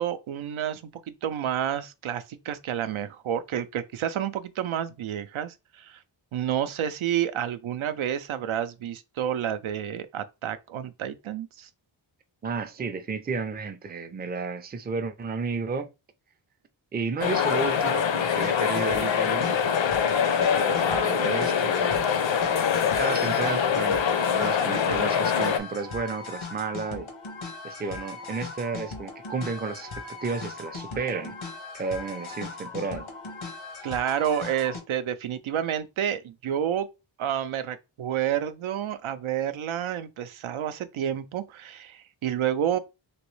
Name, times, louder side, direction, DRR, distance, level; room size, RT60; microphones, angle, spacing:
voice 1, 0.0-6.0 6.3-11.7 33.8-36.9 37.2-42.8, right 10 dB, 90° right, 0.5 m, -29 dB
voice 2, 12.4-15.9 16.9-19.7 20.6-22.1 22.4-22.5 23.0-27.1 27.6-29.9 30.2-31.3 31.7-33.1, right 4 dB, 25° right, 0.4 m, -32 dB
sound 1, 17.2-25.6, left 7 dB, 70° left, 0.6 m, -24 dB
sound 2, 18.4-34.8, left 3 dB, 90° left, 1.0 m, -39 dB
3.0 x 2.9 x 3.1 m
wide cardioid pair, 120°, 47 cm